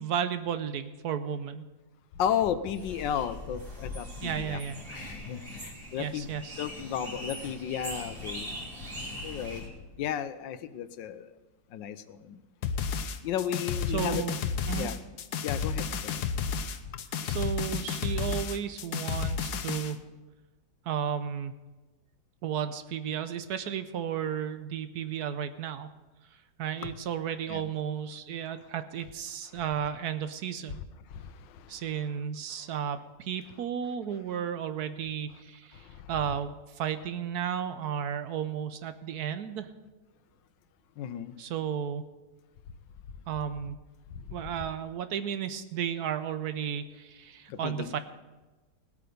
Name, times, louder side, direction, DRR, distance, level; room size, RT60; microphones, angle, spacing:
voice 1, 0.0-1.7 4.2-4.8 6.0-6.6 13.9-14.4 14.7-14.9 17.3-20.0 20.9-21.5 22.4-25.9 26.6-30.8 31.7-39.7 41.4-42.0 43.3-43.8 44.3-48.0, right 8 dB, 70° right, 11 dB, 1.1 m, -33 dB
voice 2, 2.2-4.6 4.9-6.3 6.6-8.5 9.2-9.6 10.0-11.3 11.7-12.4 13.2-14.3 14.8-15.0 15.4-16.2 26.8-26.9 27.5-27.7 30.7-30.8 31.1-31.7 41.0-41.3 44.1-44.2 47.5-47.9, left 9 dB, 85° left, 13 dB, 1.4 m, -34 dB
sound 1, 2.7-9.7, equal, 40° right, 3.4 m, -41 dB
sound 2, 12.6-19.9, left 6 dB, 70° left, 1.2 m, -32 dB
18.5 x 8.5 x 5.2 m, 1.2 s
omnidirectional pair, 1.9 m